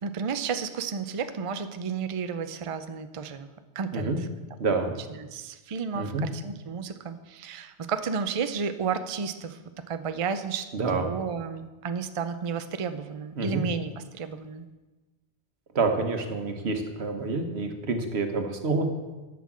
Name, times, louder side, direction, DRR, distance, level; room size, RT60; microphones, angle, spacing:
voice 1, 0.0-3.5 3.8-4.3 4.8-9.6 9.9-14.7, right 6 dB, 40° right, 9 dB, 0.5 m, -32 dB
voice 2, 4.6-4.9 5.9-6.3 10.7-11.1 13.4-13.7 15.7-18.9, right 3 dB, 75° right, 5 dB, 1.5 m, -27 dB
11.0 x 6.0 x 7.3 m, 1.2 s
omnidirectional pair, 1.1 m